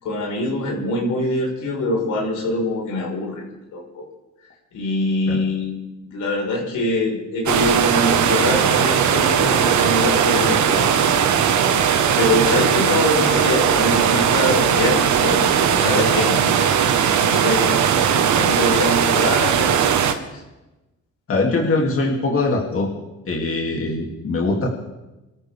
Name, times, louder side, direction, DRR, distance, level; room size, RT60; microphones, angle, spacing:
voice 1, 0.0-3.4 3.7-4.0 4.7-5.8 6.0-11.5 12.2-16.7 17.2-17.7 18.1-20.4, left 1 dB, 80° left, -1 dB, 5.1 m, -24 dB
sound 1, 7.5-20.1, right 8 dB, 75° right, 1.5 m, -18 dB
voice 2, 21.3-22.9 23.3-24.7, left 3 dB, 45° left, -2 dB, 2.9 m, -22 dB
27.0 x 13.5 x 3.6 m, 1.0 s
cardioid pair, 90°, 30 cm